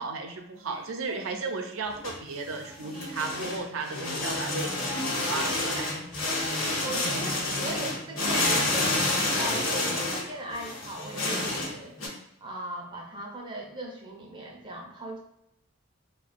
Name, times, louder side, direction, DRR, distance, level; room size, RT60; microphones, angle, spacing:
voice 1, 0.0-6.1, right 4 dB, 80° right, 4 dB, 0.5 m, -35 dB
sound 1, 1.8-12.1, left 2 dB, 85° left, 0.8 m, -29 dB
voice 2, 6.8-12.0 12.4-15.2, right 1 dB, 20° right, 0 dB, 0.4 m, -39 dB
3.4 x 2.1 x 2.4 m, 0.81 s
head